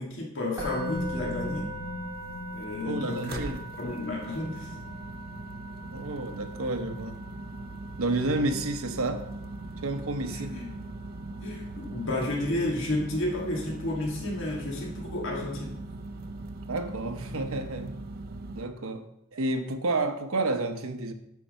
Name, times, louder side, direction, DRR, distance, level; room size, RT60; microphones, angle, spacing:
voice 1, 0.0-1.7 2.5-3.4 3.8-4.7 10.3-10.7 11.4-15.8, left 2 dB, 65° left, -1 dB, 1.6 m, -32 dB
Musical instrument, 0.6-11.7, equal, 10° right, 3.0 m, -40 dB
sound 1, 0.9-5.1, equal, 10° left, 1.8 m, -44 dB
sound 2, 0.9-18.7, right 2 dB, 45° right, 0.5 m, -41 dB
voice 2, 2.8-3.6 5.9-7.2 8.0-9.2 9.8-10.6 16.5-18.0 18.6-19.0 19.3-21.1, right 2 dB, 90° right, 6 dB, 0.9 m, -30 dB
8.4 x 4.6 x 6.3 m, 0.81 s
head